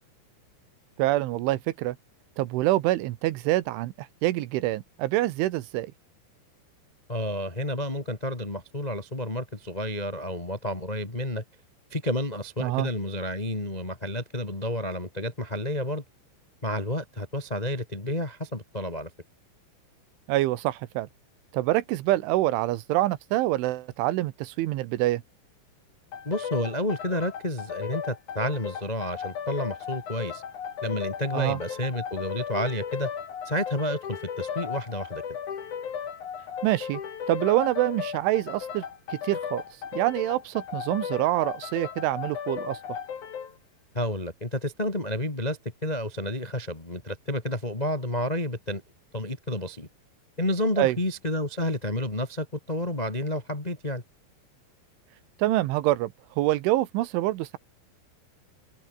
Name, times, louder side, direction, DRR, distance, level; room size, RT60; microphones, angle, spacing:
voice 1, 1.0-2.0 2.4-5.9 12.6-12.9 20.3-21.1 21.5-25.2 31.3-31.6 36.6-37.0 37.3-38.9 39.1-39.6 39.9-42.8 50.8-51.0 55.4-56.1 56.4-57.6, right 16 dB, 85° right, 3.5 m, -26 dB
voice 2, 7.1-11.4 11.9-16.0 16.6-19.1 26.2-30.4 30.8-33.1 33.4-35.2 43.9-48.8 49.1-49.9 50.4-54.0, left 1 dB, 20° left, 1.0 m, -30 dB
sound 1, 26.1-43.6, left 7 dB, 45° left, 3.5 m, -36 dB
omnidirectional pair, 5.5 m